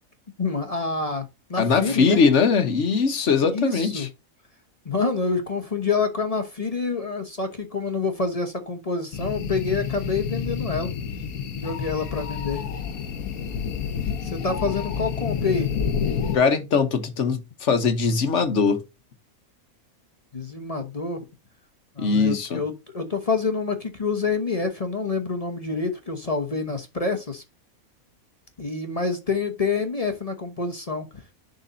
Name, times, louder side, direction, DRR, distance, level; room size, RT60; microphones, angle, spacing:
voice 1, 0.4-2.2 3.4-4.1 4.8-10.9 11.6-12.7 14.2-15.7 20.3-21.3 22.0-27.4 28.6-31.2, left 4 dB, 30° left, 1.0 m, -27 dB
voice 2, 1.6-4.1 16.3-18.8 22.0-22.6, left 5 dB, 55° left, 1.3 m, -21 dB
sound 1, 9.1-16.4, left 7 dB, 80° left, 1.3 m, -29 dB
10.5 x 4.2 x 2.6 m
omnidirectional pair, 1.5 m